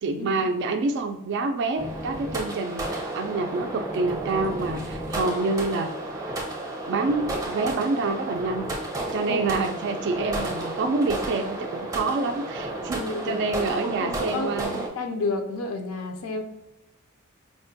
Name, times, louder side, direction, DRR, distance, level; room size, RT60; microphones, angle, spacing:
voice 1, 0.0-5.9 6.9-8.7 9.1-14.9, right 3 dB, 55° right, 6 dB, 0.3 m, -27 dB
sound 1, 1.8-14.9, right 1 dB, 15° right, 0.6 m, -32 dB
voice 2, 13.0-13.4 13.8-16.4, left 3 dB, 70° left, 6 dB, 0.4 m, -31 dB
4.6 x 2.1 x 2.7 m, 0.93 s
head